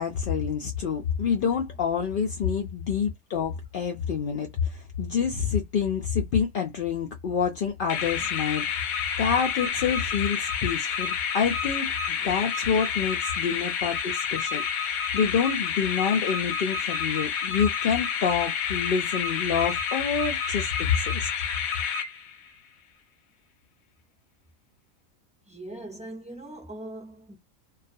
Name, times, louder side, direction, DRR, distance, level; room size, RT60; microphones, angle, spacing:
voice 1, 0.0-8.7 9.2-21.3, left 7 dB, 70° left, 0.5 m, -27 dB
sound 1, 7.9-22.5, left 7 dB, 90° left, 1.1 m, -29 dB
voice 2, 25.5-27.4, right 1 dB, 10° right, 0.3 m, -41 dB
2.4 x 2.3 x 2.5 m
omnidirectional pair, 1.4 m